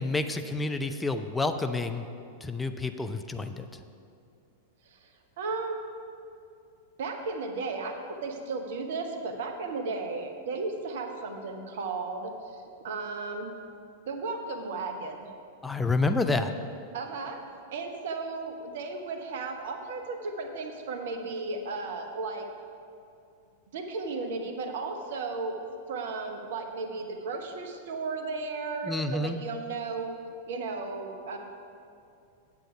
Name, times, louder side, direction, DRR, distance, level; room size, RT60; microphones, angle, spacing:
voice 1, 0.0-2.0 2.4-3.7 15.6-16.5 28.8-29.4, left 3 dB, 10° left, 7 dB, 0.4 m, -29 dB
voice 2, 5.4-5.8 7.0-12.3 12.8-13.5 14.1-15.2 16.9-17.4 17.7-22.5 23.7-25.5 25.9-30.1 30.5-31.4, right 3 dB, 55° right, 5 dB, 0.9 m, -34 dB
8.5 x 7.7 x 5.1 m, 2.5 s
figure-of-eight pair, 95°, 0 cm